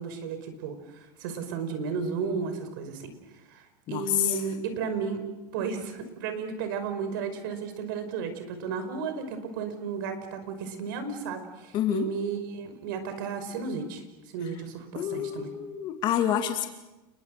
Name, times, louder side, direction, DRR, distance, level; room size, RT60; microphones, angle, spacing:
voice 1, 0.0-5.2 5.5-14.0 14.3-15.5, right 5 dB, 75° right, 8 dB, 5.5 m, -34 dB
voice 2, 3.9-4.4 11.7-12.1 14.9-16.7, left 10 dB, 45° left, 5 dB, 2.3 m, -27 dB
30.0 x 22.5 x 6.7 m, 1.1 s
supercardioid pair, 130°, 11 cm